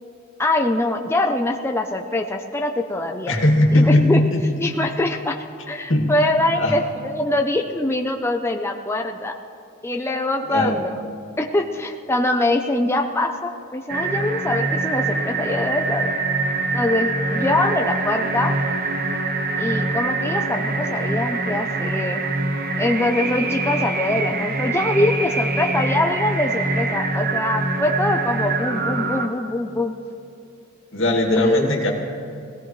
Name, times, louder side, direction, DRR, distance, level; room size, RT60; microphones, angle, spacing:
voice 1, 0.4-3.3 3.7-4.2 4.6-9.3 9.8-10.9 11.4-16.1 16.7-18.6 19.6-22.2 22.8-29.9 31.3-31.7, left 1 dB, 15° left, 3 dB, 0.6 m, -23 dB
voice 2, 3.3-4.4 5.9-6.1 6.5-6.8 10.5-10.8 30.9-31.9, left 1 dB, 70° left, 1 dB, 2.3 m, -18 dB
sound 1, 13.9-29.3, right 3 dB, 50° right, 1.0 m, -24 dB
20.5 x 16.5 x 3.2 m, 2.6 s
head